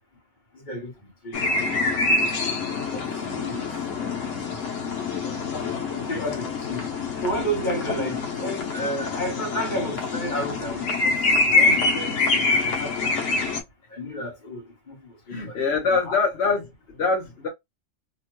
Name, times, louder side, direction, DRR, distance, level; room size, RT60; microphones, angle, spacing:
voice 1, 0.5-0.9 1.2-1.4 1.7-1.8 2.9-3.7 5.9-6.8 7.2-11.2 11.5-12.9 13.9-15.6 15.9-16.2, equal, 40° left, 1.2 m, -32 dB
sound 1, 1.3-13.6, left 3 dB, 85° left, 1.1 m, -25 dB
voice 2, 4.7-5.7 6.0-6.4 11.5-11.6 13.0-13.2 15.3-17.5, left 4 dB, 65° left, 1.0 m, -27 dB
2.9 x 2.1 x 2.9 m
omnidirectional pair, 1.3 m